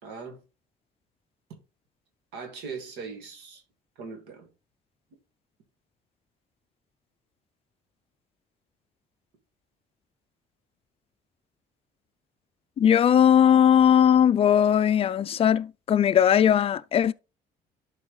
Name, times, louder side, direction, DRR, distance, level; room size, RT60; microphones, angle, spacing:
voice 1, 0.0-0.4 2.3-3.6 4.0-4.5, right 5 dB, 90° right, 1.8 m, -39 dB
voice 2, 12.8-17.1, left 9 dB, 35° left, 0.4 m, -19 dB
11.5 x 4.5 x 3.1 m
cardioid pair, 110°, 17 cm